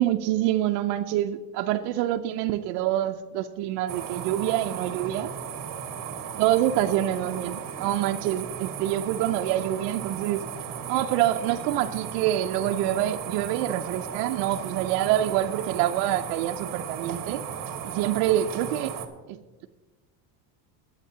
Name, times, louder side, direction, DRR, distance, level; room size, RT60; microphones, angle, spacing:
voice 1, 0.0-5.3 6.4-10.4 10.9-17.4 17.8-19.0 19.3-19.7, right 13 dB, 75° right, 5 dB, 0.7 m, -26 dB
sound 1, 3.9-19.1, right 8 dB, 40° right, 1.3 m, -36 dB
22.0 x 8.3 x 2.8 m, 1.3 s
supercardioid pair, 100°, 48 cm